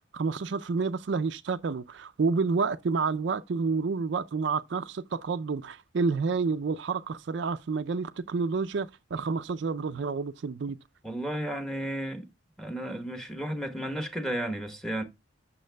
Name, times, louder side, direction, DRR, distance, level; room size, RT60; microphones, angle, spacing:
voice 1, 0.1-10.8, right 4 dB, 60° right, 0.4 m, -29 dB
voice 2, 11.0-12.3 12.6-15.0, right 1 dB, 5° left, 1.1 m, -33 dB
13.0 x 6.0 x 2.2 m
head